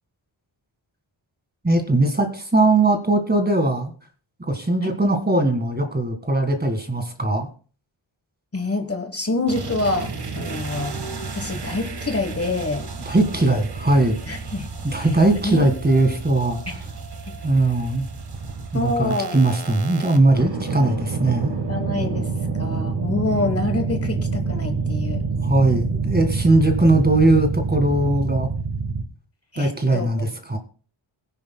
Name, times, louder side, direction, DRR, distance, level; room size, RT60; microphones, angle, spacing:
voice 1, 1.6-3.9 4.4-7.5 13.1-14.2 14.8-16.8 17.4-18.0 18.7-21.5 25.4-28.5 29.6-30.6, right 2 dB, 20° right, 6 dB, 1.8 m, -20 dB
voice 2, 8.5-10.9 11.3-12.8 14.3-14.7 15.0-15.7 16.7-16.8 18.7-19.4 21.7-22.3 22.6-25.2 29.5-30.3, left 2 dB, 30° left, 7 dB, 1.2 m, -26 dB
sound 1, 9.5-29.0, right 4 dB, 55° right, 1.5 m, -28 dB
21.5 x 10.0 x 2.2 m, 0.39 s
wide cardioid pair, 135°, 47 cm